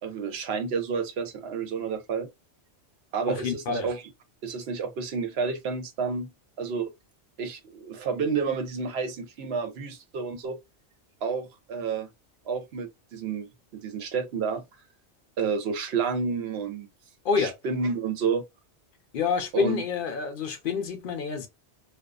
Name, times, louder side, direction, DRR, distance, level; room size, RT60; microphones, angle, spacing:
voice 1, 0.0-2.3 3.1-4.0 4.4-6.3 6.6-6.9 7.4-10.6 11.2-12.1 12.5-14.6 15.4-16.9 17.4-18.4 19.5-19.8, right 5 dB, 70° right, 0.9 m, -30 dB
voice 2, 3.3-3.9 17.2-17.6 19.1-21.5, left 5 dB, 55° left, 0.7 m, -28 dB
2.3 x 2.3 x 2.3 m
omnidirectional pair, 1.2 m